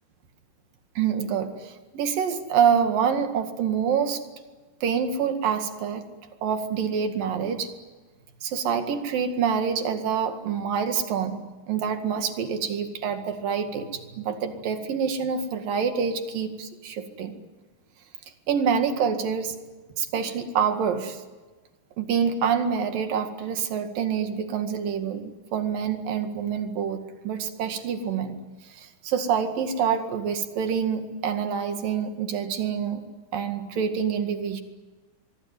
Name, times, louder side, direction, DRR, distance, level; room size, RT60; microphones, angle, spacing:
voice 1, 1.0-4.2 4.8-6.1 6.4-7.7 8.4-11.4 11.7-17.3 18.5-19.6 20.0-21.2 22.0-28.4 28.7-33.0 33.3-34.6, right 7 dB, 85° right, 6 dB, 3.8 m, -26 dB
24.0 x 23.5 x 9.2 m, 1.3 s
omnidirectional pair, 3.9 m